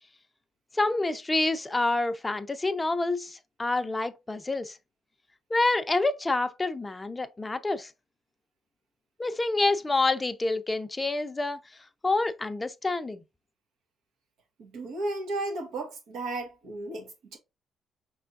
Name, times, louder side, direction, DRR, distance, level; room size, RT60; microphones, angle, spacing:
voice 1, 0.7-4.8 5.5-7.9 9.2-11.6 12.0-13.2, left 2 dB, 20° left, 0.5 m, -27 dB
voice 2, 14.6-17.4, right 2 dB, 85° right, 1.3 m, -34 dB
5.3 x 3.4 x 2.6 m
cardioid pair, 90°, 0 cm